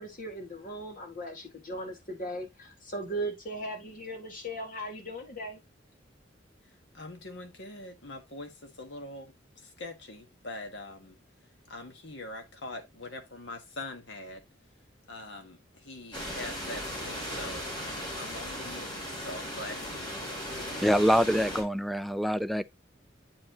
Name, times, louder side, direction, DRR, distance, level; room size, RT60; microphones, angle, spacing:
voice 1, 0.0-5.6, right 1 dB, 45° left, 1.9 m, -38 dB
voice 2, 6.9-11.2 11.7-14.4 15.1-20.7, left 2 dB, 70° left, 1.6 m, -43 dB
sound 1, 16.1-21.6, equal, 25° left, 2.8 m, -37 dB
voice 3, 20.8-22.6, equal, ahead, 0.3 m, -25 dB
8.5 x 4.7 x 2.9 m
head